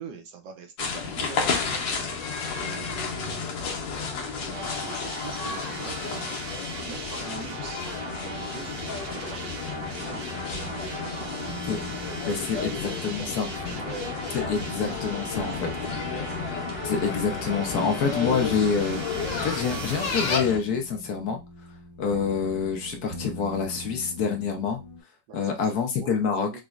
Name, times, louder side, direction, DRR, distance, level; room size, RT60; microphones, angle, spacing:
voice 1, 0.0-6.4 6.8-10.2 10.9-11.7 11.9-13.4 13.8-14.7 15.3-15.8 25.3-25.6 26.0-26.1, right 6 dB, 80° right, 5 dB, 1.3 m, -44 dB
sound 1, 0.8-20.6, left 5 dB, 85° left, 1.5 m, -32 dB
sound 2, 4.5-20.4, right 2 dB, 55° right, 1.0 m, -38 dB
sound 3, 8.6-25.0, right 1 dB, 15° left, 0.8 m, -42 dB
voice 2, 12.3-13.7 14.5-15.7 16.8-19.0 19.4-21.4 22.0-24.8 25.3-26.5, left 6 dB, 65° left, 3 dB, 1.0 m, -27 dB
5.0 x 2.1 x 2.3 m, 0.24 s
omnidirectional pair, 2.0 m